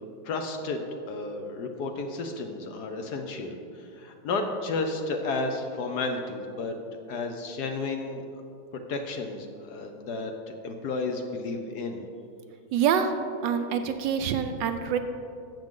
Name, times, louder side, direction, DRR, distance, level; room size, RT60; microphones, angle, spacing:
voice 1, 0.0-6.8 7.1-8.2 8.9-12.0, left 3 dB, 65° left, 5 dB, 1.1 m, -32 dB
voice 2, 12.7-13.1 13.4-15.0, right 8 dB, 75° right, 7 dB, 1.2 m, -26 dB
12.5 x 7.6 x 3.7 m, 2.6 s
omnidirectional pair, 2.1 m